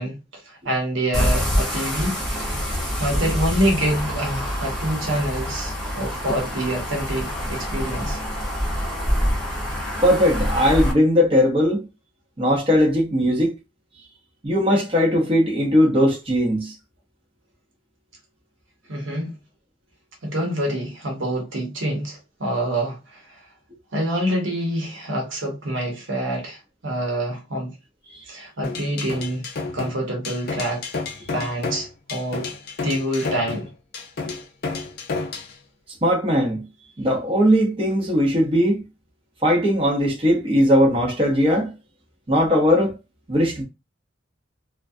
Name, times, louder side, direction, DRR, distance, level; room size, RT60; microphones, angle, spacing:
voice 1, 0.0-2.2 3.0-8.2 18.9-19.4 20.2-23.4 23.9-27.7 28.3-29.4 29.7-30.8 31.3-32.5 32.8-33.7, right 1 dB, 85° right, 1.0 m, -26 dB
sound 1, 1.1-10.9, equal, ahead, 0.8 m, -26 dB
voice 2, 10.0-11.9 12.4-13.5 14.4-16.7 28.1-28.2 36.0-36.6 37.0-38.8 39.4-41.7 42.3-43.0 43.3-43.6, equal, 30° right, 0.7 m, -19 dB
sound 2, 28.6-35.5, left 4 dB, 50° left, 0.5 m, -31 dB
2.3 x 2.2 x 2.6 m
head